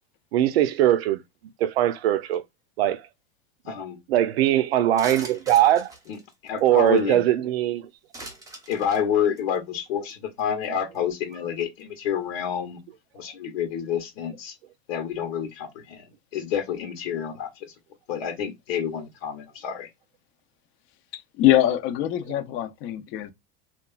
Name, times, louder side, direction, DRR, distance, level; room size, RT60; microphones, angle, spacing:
voice 1, 0.3-1.2 1.6-2.4 2.8-3.0 4.1-5.9 6.6-7.8, right 12 dB, 90° right, 0.5 m, -21 dB
voice 2, 3.7-4.0 6.1-6.2 6.4-7.2 8.7-12.8 13.1-14.5 14.9-16.0 16.3-17.7 18.1-19.9, left 8 dB, 80° left, 1.0 m, -28 dB
sound 1, 5.0-7.1 8.1-9.0 9.4-9.6 10.1-10.2 10.4-10.6 10.9-11.0, right 2 dB, 10° right, 0.8 m, -41 dB
voice 3, 21.1-23.3, left 13 dB, 45° left, 0.5 m, -23 dB
2.9 x 2.3 x 2.2 m
supercardioid pair, 130°, 30 cm